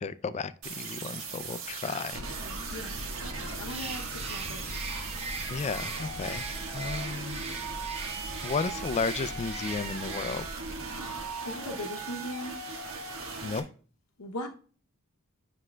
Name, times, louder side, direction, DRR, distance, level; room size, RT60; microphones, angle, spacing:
voice 1, 0.0-2.2 5.5-7.5 8.4-10.5 13.4-13.6, left 4 dB, 30° left, 0.3 m, -33 dB
sound 1, 0.6-13.6, right 4 dB, 65° right, 1.3 m, -39 dB
sound 2, 2.1-11.3, equal, 85° right, 1.3 m, -42 dB
voice 2, 2.7-4.8 10.9-12.6 14.2-14.5, left 1 dB, 75° left, 0.7 m, -40 dB
Bird, 3.6-10.7, right 4 dB, 25° right, 0.5 m, -41 dB
9.7 x 6.0 x 2.2 m
head